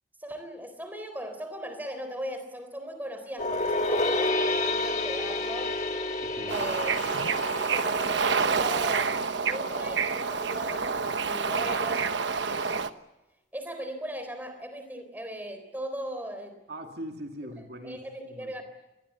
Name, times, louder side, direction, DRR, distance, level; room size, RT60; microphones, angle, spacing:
voice 1, 0.2-5.8 6.5-7.3 7.7-12.2 13.5-16.6 17.8-18.6, equal, 10° right, 7 dB, 3.8 m, -38 dB
sound 1, 3.4-8.6, left 2 dB, 40° left, 1.6 m, -29 dB
voice 2, 6.2-7.2 16.7-18.6, equal, 60° right, 3 dB, 2.5 m, -42 dB
Bird / Ocean, 6.5-12.9, right 5 dB, 80° right, 1.1 m, -28 dB
26.0 x 20.0 x 8.2 m, 0.98 s
head